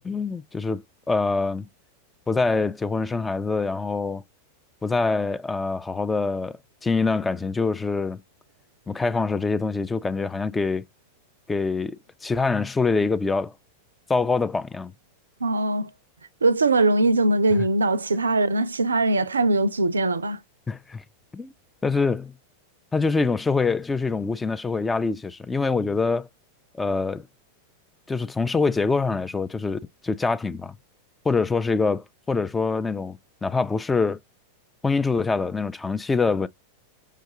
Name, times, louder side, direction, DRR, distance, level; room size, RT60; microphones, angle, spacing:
voice 1, 0.0-1.7 2.3-4.2 4.8-8.2 8.9-10.8 11.5-13.5 14.1-14.9 20.7-21.0 21.3-21.5 21.8-22.3 22.9-26.3 26.7-27.3 28.1-30.8 31.2-34.2 34.8-36.5, left 4 dB, 10° left, 0.3 m, -25 dB
voice 2, 15.4-15.9 16.4-20.4, right 2 dB, 75° right, 0.4 m, -21 dB
5.7 x 2.4 x 2.7 m
figure-of-eight pair, 90°, 0 cm